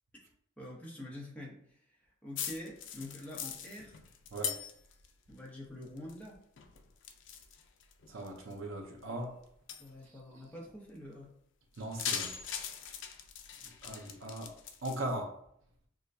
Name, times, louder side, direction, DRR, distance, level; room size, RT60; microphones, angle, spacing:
voice 1, 0.6-4.0 5.3-6.4 9.8-11.3, left 1 dB, 5° left, 0.8 m, -46 dB
sound 1, 2.4-5.1 5.4-6.3 6.6-8.5 9.0-9.1 9.7-9.9 11.8-15.0, left 7 dB, 65° left, 0.4 m, -41 dB
voice 2, 8.1-9.4 11.8-12.4 13.8-14.5 14.8-15.4, right 1 dB, 80° right, 0.8 m, -39 dB
6.2 x 2.2 x 2.6 m
head